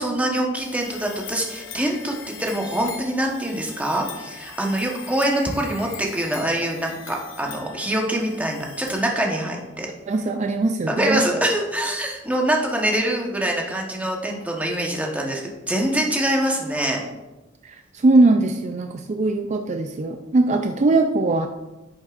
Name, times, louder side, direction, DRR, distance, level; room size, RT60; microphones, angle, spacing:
voice 1, 0.0-9.9 10.9-17.0, right 1 dB, 10° right, 0 dB, 1.1 m, -24 dB
sound 1, 0.5-9.6, left 6 dB, 90° left, 1.1 m, -41 dB
voice 2, 10.1-11.2 17.6-21.5, right 2 dB, 35° right, 4 dB, 0.4 m, -20 dB
10.5 x 6.3 x 2.5 m, 1.1 s
head